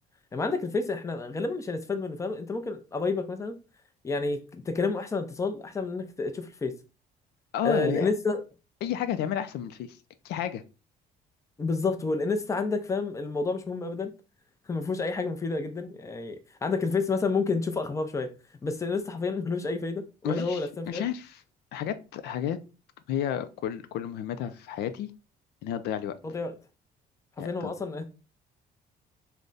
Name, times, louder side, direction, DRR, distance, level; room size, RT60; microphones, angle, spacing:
voice 1, 0.3-3.5 4.0-6.8 7.6-8.4 11.6-14.1 14.7-18.3 18.6-21.0 26.2-26.5 27.4-28.0, left 3 dB, 20° left, 0.5 m, -29 dB
voice 2, 7.5-8.1 8.8-10.0 10.2-10.6 20.2-21.4 21.7-22.6 23.1-25.1 25.6-26.1 27.4-27.7, left 10 dB, 75° left, 0.4 m, -31 dB
3.5 x 2.1 x 3.9 m
cardioid pair, 110°, 17 cm